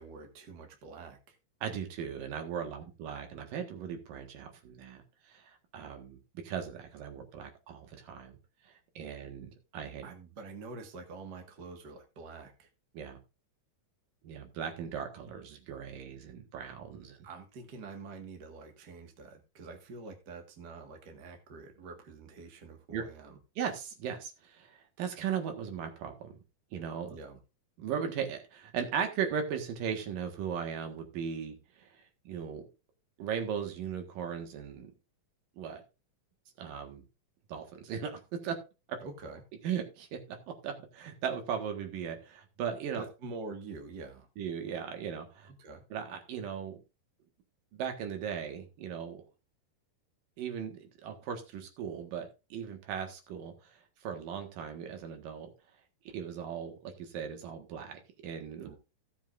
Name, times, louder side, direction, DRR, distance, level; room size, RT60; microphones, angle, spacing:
voice 1, 0.0-1.4 2.8-2.9 10.0-12.7 17.2-23.4 27.1-27.4 39.0-39.4 42.9-44.3 45.5-45.8 58.6-58.8, right 3 dB, 40° right, 4 dB, 1.8 m, -46 dB
voice 2, 1.6-8.4 8.6-10.1 12.9-13.2 14.2-17.3 22.9-23.0 23.6-26.4 26.7-27.1 27.8-32.6 33.2-34.9 35.6-35.8 36.6-37.0 37.5-38.5 38.9-39.0 39.6-43.0 44.4-45.5 45.9-46.8 47.7-49.2 50.4-55.5 56.1-58.7, right 7 dB, 80° right, 5 dB, 3.3 m, -38 dB
16.5 x 7.5 x 2.6 m, 0.28 s
omnidirectional pair, 3.9 m